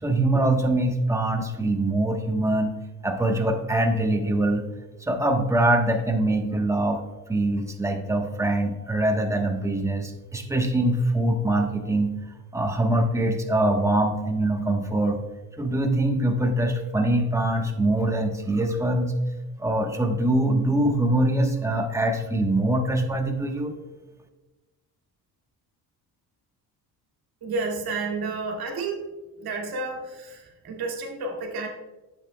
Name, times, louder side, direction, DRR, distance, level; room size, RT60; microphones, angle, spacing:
voice 1, 0.0-2.7 3.0-4.6 5.0-7.0 7.3-12.1 12.5-15.2 15.6-19.1 19.6-23.7, right 1 dB, 10° right, 2 dB, 1.1 m, -23 dB
voice 2, 27.4-29.1 29.4-31.7, right 3 dB, 65° right, 1 dB, 2.2 m, -31 dB
10.5 x 7.6 x 2.2 m, 1.1 s
cardioid pair, 115°, 39 cm